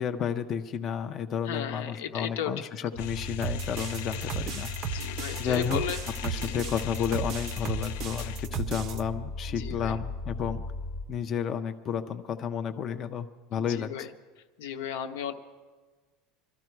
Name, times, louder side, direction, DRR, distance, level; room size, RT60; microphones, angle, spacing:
voice 1, 0.0-4.7 5.4-5.8 6.2-10.6 11.1-14.1, left 7 dB, 25° left, 8 dB, 0.5 m, -31 dB
voice 2, 1.4-2.5 2.8-2.9 4.9-6.0 6.4-6.5 9.6-9.9 13.7-14.1 14.6-15.3, left 9 dB, 85° left, 7 dB, 1.0 m, -35 dB
sound 1, 2.9-11.0, left 3 dB, 50° left, 0.9 m, -37 dB
sound 2, 3.0-8.5, left 11 dB, 70° left, 0.6 m, -42 dB
sound 3, 3.4-9.0, right 8 dB, 35° right, 0.5 m, -35 dB
22.5 x 13.5 x 4.6 m, 1.4 s
cardioid pair, 175°, 0 cm